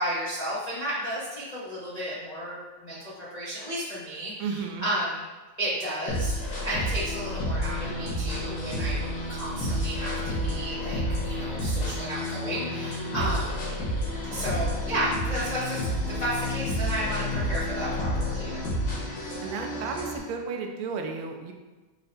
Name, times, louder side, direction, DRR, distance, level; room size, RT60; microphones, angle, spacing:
voice 1, 0.0-5.2 5.6-9.0 9.3-13.6 14.3-15.8 16.1-18.7, right 1 dB, 85° left, -10 dB, 0.3 m, -33 dB
voice 2, 4.4-4.9 13.2-13.3 19.4-21.5, right 5 dB, 80° right, 3 dB, 1.4 m, -33 dB
sound 1, 6.1-20.2, left 1 dB, 65° left, 1.9 m, -30 dB
5.7 x 2.2 x 3.9 m, 1.2 s
omnidirectional pair, 2.3 m